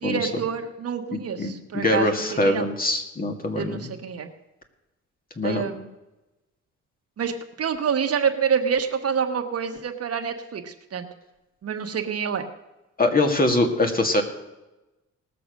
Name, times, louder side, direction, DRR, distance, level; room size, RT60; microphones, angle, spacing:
voice 1, 0.0-2.7 3.5-4.3 5.4-5.9 7.2-11.1 11.6-12.5, right 7 dB, 55° right, 6 dB, 1.3 m, -27 dB
voice 2, 1.1-3.9 5.4-5.6 13.0-14.2, left 2 dB, 30° left, 5 dB, 2.1 m, -23 dB
19.0 x 6.8 x 6.5 m, 1.0 s
cardioid pair, 90°, 30 cm